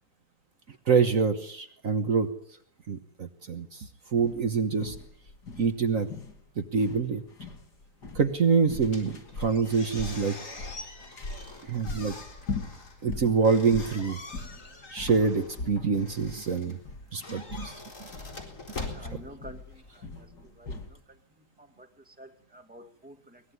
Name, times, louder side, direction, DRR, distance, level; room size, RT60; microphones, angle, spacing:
voice 1, 0.9-2.3 2.9-5.0 5.6-6.1 6.6-7.2 8.1-10.4 11.6-12.2 13.0-14.2 14.9-16.8 17.1-17.7 19.1-19.2, right 5 dB, 55° right, 9 dB, 1.6 m, -26 dB
sound 1, 4.2-21.0, left 3 dB, 75° left, 3.5 m, -41 dB
sound 2, 8.8-20.0, left 3 dB, 50° left, 4.7 m, -44 dB
voice 2, 18.9-19.6 19.9-20.3 20.6-20.7 21.8-21.9 22.2-23.4, equal, 5° right, 7 dB, 1.7 m, -48 dB
22.5 x 20.5 x 9.7 m, 0.69 s
omnidirectional pair, 1.8 m